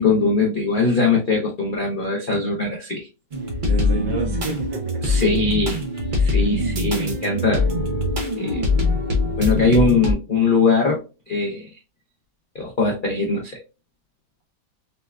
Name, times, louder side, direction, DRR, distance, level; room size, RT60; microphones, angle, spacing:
voice 1, 0.0-3.1 5.0-5.8 6.2-7.7 8.4-8.6 9.4-11.0 11.3-11.7 12.5-13.6, left 3 dB, 70° left, 0.4 m, -21 dB
sound 1, 3.3-10.1, left 2 dB, 65° right, 0.4 m, -23 dB
voice 2, 3.6-5.2 6.4-6.5, right 3 dB, 85° right, 1.4 m, -30 dB
4.2 x 2.1 x 2.3 m
omnidirectional pair, 1.8 m